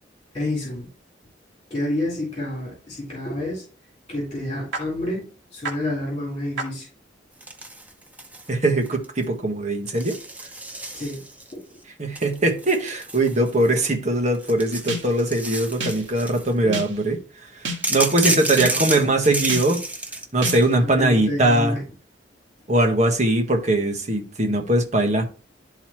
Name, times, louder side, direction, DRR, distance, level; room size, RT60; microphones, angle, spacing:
voice 1, 0.3-0.9 1.7-3.6 4.1-5.3 5.5-6.9 10.9-11.2 11.5-11.6 15.8-16.1 16.6-16.8 18.6-18.8 21.0-21.8, left 1 dB, 30° left, 3.8 m, -28 dB
sound 1, 4.7-4.8 5.6-5.7 6.6-6.7 14.9-15.3 15.8-16.2 16.7-17.1 17.6-18.1 18.6-19.0 19.5-19.9 20.4-20.8, right 2 dB, 75° right, 1.7 m, -31 dB
sound 2, 7.4-8.5 8.8-9.2 9.9-11.5 12.1-13.9 14.3-16.5 17.8-20.6, right 2 dB, 10° right, 0.7 m, -30 dB
voice 2, 8.5-10.2 12.0-17.2 17.9-19.8 20.3-21.7 22.7-25.2, right 1 dB, 40° right, 1.4 m, -21 dB
12.0 x 4.0 x 3.1 m
head